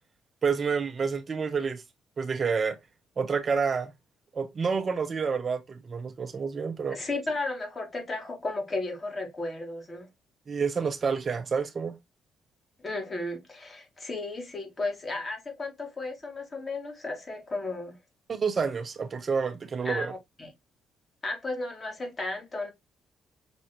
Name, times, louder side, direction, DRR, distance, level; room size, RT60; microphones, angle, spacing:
voice 1, 0.4-1.8 2.2-2.8 3.2-3.9 4.3-7.0 10.5-11.9 18.3-20.1, right 5 dB, 40° right, 0.8 m, -29 dB
voice 2, 6.9-10.1 12.8-18.0 19.8-20.5 21.2-22.7, left 2 dB, 30° left, 2.0 m, -34 dB
6.1 x 3.0 x 2.8 m
cardioid pair, 90°, 0 cm